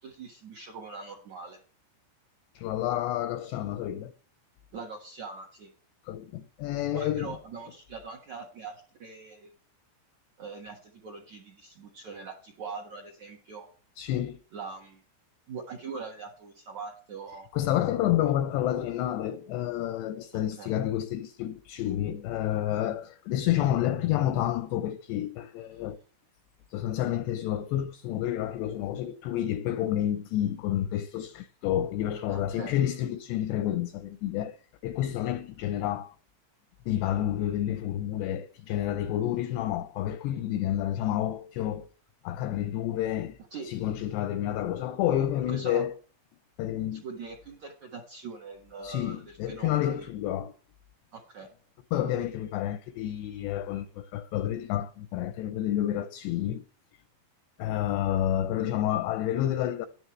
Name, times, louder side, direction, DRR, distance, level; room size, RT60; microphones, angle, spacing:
voice 1, 0.0-1.6 4.7-5.7 6.9-9.5 10.4-13.7 14.5-15.0 15.5-17.5 20.3-20.7 32.3-32.8 43.5-43.7 45.5-45.8 46.9-50.1 51.1-51.5, right 4 dB, 60° right, 1.9 m, -42 dB
voice 2, 2.6-4.1 6.1-7.4 14.0-14.4 17.5-26.0 26.7-34.6 34.8-36.2 36.9-41.9 42.2-43.4 43.7-45.9 46.6-47.0 48.8-50.5 51.9-56.6 57.6-59.9, left 12 dB, 80° left, 2.5 m, -29 dB
12.5 x 11.0 x 3.2 m
omnidirectional pair, 5.6 m